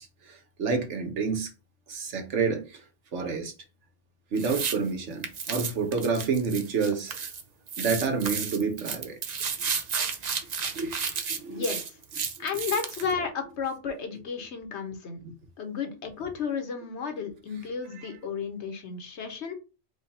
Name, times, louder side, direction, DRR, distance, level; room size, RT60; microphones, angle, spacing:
voice 1, 0.0-1.5 1.9-2.8 3.1-3.5 4.3-7.2 7.8-9.2 10.7-10.9 11.3-11.7 18.0-18.1, right 5 dB, 75° right, 1.3 m, -29 dB
sound 1, 4.4-4.8 5.2-7.4 7.7-13.1, right 6 dB, 45° right, 0.6 m, -32 dB
voice 2, 11.5-12.0 12.4-15.2 15.6-19.5, left 5 dB, 70° left, 1.2 m, -33 dB
5.1 x 2.3 x 4.1 m
omnidirectional pair, 1.2 m